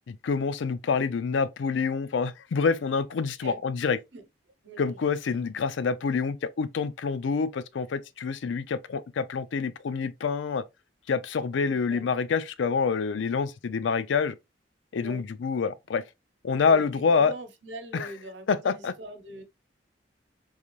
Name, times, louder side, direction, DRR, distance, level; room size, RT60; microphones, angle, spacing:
voice 1, 0.1-4.0 4.8-10.6 11.1-14.4 14.9-16.0 16.4-17.3 17.9-18.1 18.5-18.9, left 5 dB, 80° left, 0.4 m, -27 dB
voice 2, 4.6-5.1 11.7-12.1 15.0-15.3 16.6-19.4, right 2 dB, 75° right, 0.9 m, -43 dB
3.8 x 2.6 x 3.0 m
head